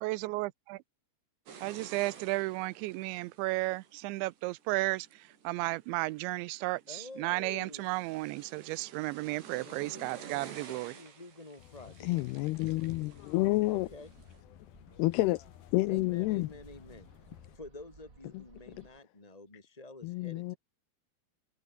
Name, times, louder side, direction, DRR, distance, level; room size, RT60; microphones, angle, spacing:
voice 1, 0.0-0.8 1.6-10.9, right 21 dB, 85° right, 3.0 m, -34 dB
sound 1, 1.5-14.4, right 7 dB, 65° right, 6.4 m, -53 dB
voice 2, 6.9-7.9 9.6-12.1 13.7-14.1 15.9-20.5, left 2 dB, 15° left, 1.1 m, -50 dB
sound 2, 11.6-17.6, left 12 dB, 65° left, 3.1 m, -52 dB
voice 3, 12.0-13.9 15.0-15.4 15.7-16.5 20.0-20.6, left 20 dB, 85° left, 2.3 m, -29 dB
Bird, 12.0-19.0, right 3 dB, 20° right, 2.9 m, -61 dB
omnidirectional pair, 5.2 m